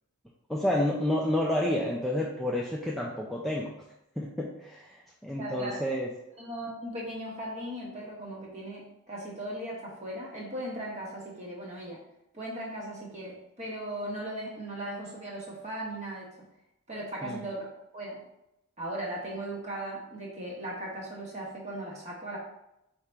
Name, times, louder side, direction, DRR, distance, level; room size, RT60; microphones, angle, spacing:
voice 1, 0.5-3.8 4.2-6.1 17.2-17.4, left 1 dB, ahead, -4 dB, 0.3 m, -30 dB
voice 2, 5.4-5.8 6.4-12.0 12.3-16.3 16.9-18.2 18.8-22.4, right 1 dB, 30° right, -3 dB, 1.0 m, -38 dB
4.7 x 2.8 x 3.4 m, 0.85 s
head